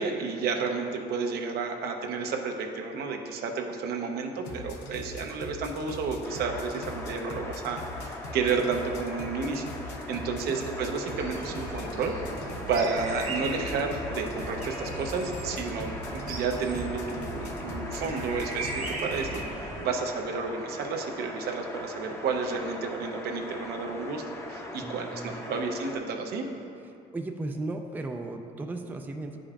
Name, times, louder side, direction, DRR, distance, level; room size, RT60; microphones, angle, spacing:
voice 1, 0.0-12.1 12.7-26.5, right 4 dB, 70° right, 3 dB, 0.7 m, -31 dB
sound 1, 4.4-19.4, left 3 dB, 90° left, 0.8 m, -42 dB
sound 2, 6.2-26.0, left 1 dB, 15° left, 0.7 m, -41 dB
voice 2, 10.2-10.6 24.8-25.3 27.1-29.4, right 2 dB, 10° right, 4 dB, 0.3 m, -36 dB
sound 3, 11.2-19.9, right 2 dB, 50° right, 1.1 m, -38 dB
9.9 x 5.1 x 2.4 m, 2.7 s
cardioid pair, 110°, 17 cm